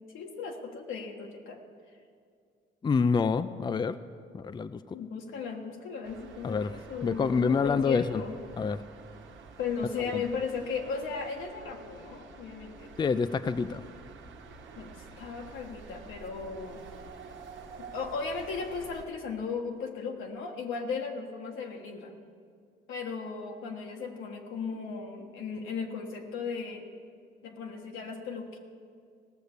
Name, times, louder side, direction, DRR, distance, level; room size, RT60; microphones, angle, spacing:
voice 1, 0.1-1.6 4.9-8.3 9.6-12.9 14.7-16.9 17.9-22.1 22.9-26.9 27.4-28.6, left 5 dB, 90° left, 2 dB, 1.4 m, -36 dB
voice 2, 2.8-4.0 4.3-5.0 6.4-6.7 7.0-8.2 8.6-8.8 10.0-10.2 13.0-13.8, left 5 dB, 20° left, 12 dB, 0.4 m, -27 dB
sound 1, 6.0-19.1, right 5 dB, 75° right, 1.2 m, -49 dB
17.5 x 6.9 x 6.6 m, 2.2 s
cardioid pair, 90°, 20 cm